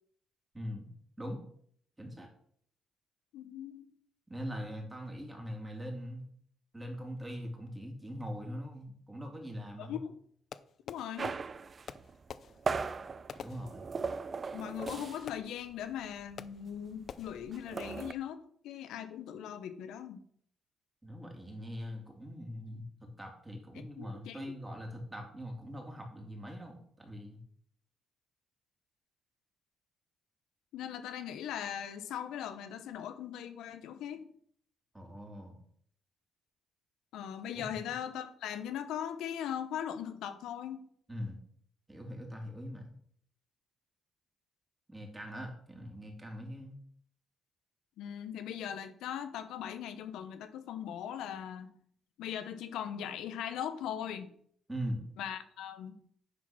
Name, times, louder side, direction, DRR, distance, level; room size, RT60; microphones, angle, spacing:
voice 1, 0.5-0.9 1.2-1.4 2.0-2.3 4.3-6.3 6.7-10.0 13.3-13.9 21.0-22.8 23.2-27.4 34.9-35.6 37.5-37.7 41.1-41.4 41.9-42.9 44.9-46.8 54.7-55.0, equal, 10° right, 1 dB, 3.0 m, -42 dB
voice 2, 3.3-3.9 9.8-10.2 10.9-11.3 14.5-18.4 18.6-20.2 24.0-24.4 30.7-34.3 37.1-40.8 48.0-51.7 52.2-54.3 55.2-56.0, left 9 dB, 85° left, 9 dB, 0.9 m, -39 dB
Fireworks, 10.5-11.5 11.9-14.3 14.9-15.8 16.4-16.8 17.1-17.6, left 7 dB, 55° left, 0.5 m, -49 dB
sound 1, 11.2-15.4 15.7-15.9 16.2-18.1, right 4 dB, 40° right, 0.5 m, -38 dB
9.8 x 4.7 x 6.2 m, 0.62 s
cardioid pair, 90°, 0 cm